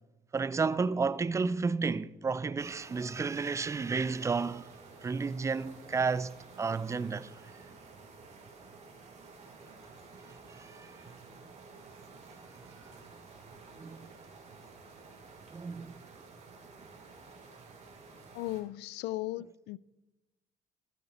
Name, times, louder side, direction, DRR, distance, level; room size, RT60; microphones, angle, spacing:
voice 1, 0.3-4.7 5.0-6.3 6.6-7.3 10.6-10.9 13.8-14.1 15.5-15.9, right 4 dB, 15° right, 0.4 m, -31 dB
sound 1, 2.6-18.6, right 4 dB, 40° right, 2.7 m, -52 dB
voice 2, 18.3-19.8, left 17 dB, 85° left, 0.4 m, -36 dB
12.5 x 11.0 x 4.2 m
cardioid pair, 110°, 17 cm